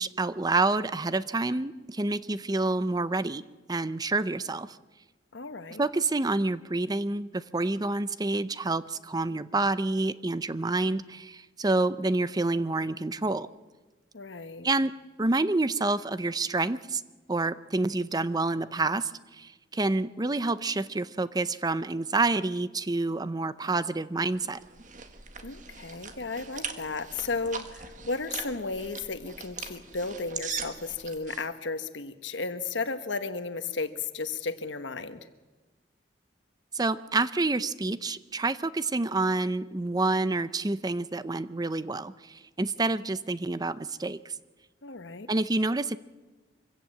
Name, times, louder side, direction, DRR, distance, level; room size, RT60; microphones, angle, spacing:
voice 1, 0.0-3.4 3.7-4.8 5.8-13.5 14.6-14.9 15.2-17.0 17.3-24.6 36.7-44.3 45.3-46.0, right 2 dB, 20° right, 15 dB, 0.6 m, -28 dB
voice 2, 5.3-5.8 14.1-14.7 25.4-35.2 44.8-45.3, left 4 dB, 90° left, 10 dB, 1.3 m, -34 dB
sound 1, 24.4-31.5, right 6 dB, 45° right, 1.6 m, -40 dB
25.0 x 16.5 x 7.7 m, 1.2 s
head